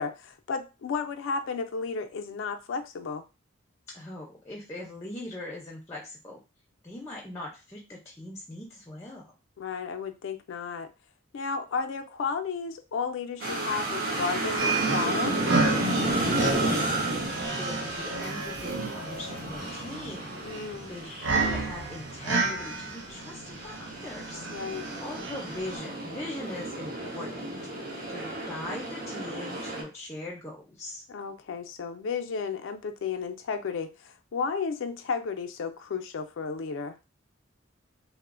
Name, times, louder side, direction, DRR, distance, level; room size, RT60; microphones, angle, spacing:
voice 1, 0.0-3.2 9.6-10.9 11.3-15.4 20.4-20.9 24.5-24.9 28.1-28.5 31.1-36.9, left 5 dB, 70° left, 6 dB, 0.4 m, -33 dB
voice 2, 3.9-6.4 6.8-9.3 15.9-17.0 17.5-20.4 20.9-27.6 28.1-31.0, left 1 dB, 15° left, -2 dB, 0.5 m, -40 dB
sound 1, 13.4-29.8, right 2 dB, 50° right, 1.0 m, -33 dB
sound 2, 14.6-25.8, right 3 dB, 65° right, 0.5 m, -31 dB
3.0 x 2.0 x 2.4 m, 0.29 s
head